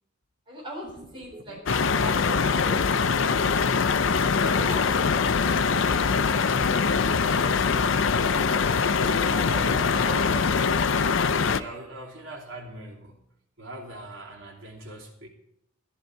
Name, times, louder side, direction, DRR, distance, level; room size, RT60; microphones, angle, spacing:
voice 1, 0.5-2.9 4.4-6.4 9.3-10.0, equal, 25° right, -3 dB, 3.9 m, -40 dB
sound 1, 0.8-9.8, right 1 dB, 45° right, 1.7 m, -43 dB
sound 2, 1.7-11.6, left 5 dB, 75° left, 0.6 m, -23 dB
voice 2, 8.9-9.5 9.9-10.7 11.4-13.2 13.6-15.3, right 2 dB, 85° right, -1 dB, 2.8 m, -42 dB
14.0 x 11.0 x 4.6 m, 0.80 s
head